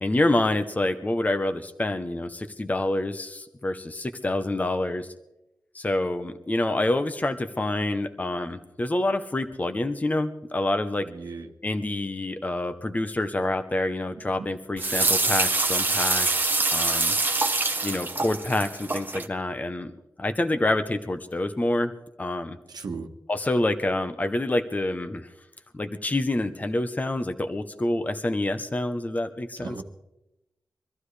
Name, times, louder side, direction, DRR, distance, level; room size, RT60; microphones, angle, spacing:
voice 1, 0.0-5.1 5.7-11.1 11.6-17.2 17.8-19.9 20.2-21.9 22.2-22.6 23.3-25.3 25.7-29.8, left 1 dB, 20° left, 9 dB, 0.8 m, -27 dB
voice 2, 11.0-11.5 14.2-14.5 22.7-23.1 29.6-29.8, right 4 dB, 65° right, 4 dB, 1.3 m, -37 dB
sound 1, 14.8-19.3, right 3 dB, 25° right, 0.9 m, -25 dB
24.0 x 14.5 x 3.3 m, 0.92 s
wide cardioid pair, 145°, 7 cm